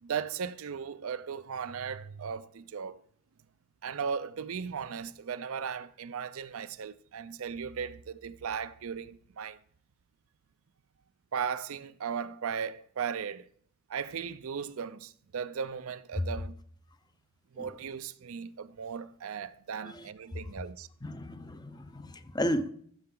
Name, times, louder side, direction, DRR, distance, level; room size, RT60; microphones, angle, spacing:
voice 1, 0.0-3.0 3.8-9.6 11.3-13.4 13.9-16.6 17.5-20.9, right 6 dB, 75° right, 0.5 m, -37 dB
voice 2, 21.0-22.7, equal, 20° left, 0.5 m, -34 dB
15.0 x 6.8 x 3.8 m
head